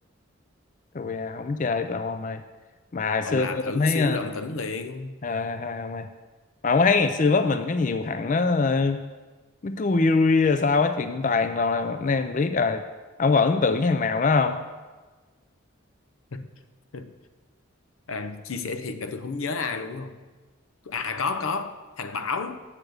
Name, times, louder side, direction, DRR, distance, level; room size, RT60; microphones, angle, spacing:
voice 1, 0.9-2.4 2.9-4.2 5.2-6.1 6.6-9.0 9.6-12.8 13.2-14.6, left 4 dB, 40° left, 0.4 m, -23 dB
voice 2, 3.2-5.2 16.3-16.5 16.9-17.1 18.1-20.2 20.8-22.6, left 4 dB, 90° left, 0.7 m, -31 dB
7.4 x 6.8 x 7.9 m
head